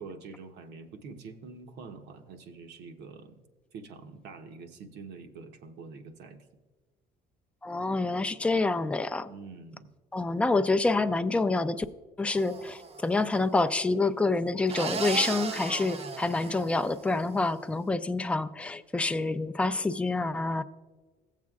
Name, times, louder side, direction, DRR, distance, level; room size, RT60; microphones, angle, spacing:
voice 1, 0.0-3.4 3.7-6.4 9.3-9.9, right 4 dB, 80° right, 6 dB, 0.9 m, -45 dB
voice 2, 7.6-9.3 10.1-11.9 12.2-20.6, left 3 dB, 5° left, 11 dB, 0.3 m, -27 dB
sound 1, 12.3-13.1 14.7-17.3, right 5 dB, 40° right, 0.6 m, -36 dB
16.5 x 7.4 x 2.4 m, 1.3 s
cardioid pair, 110°, 17 cm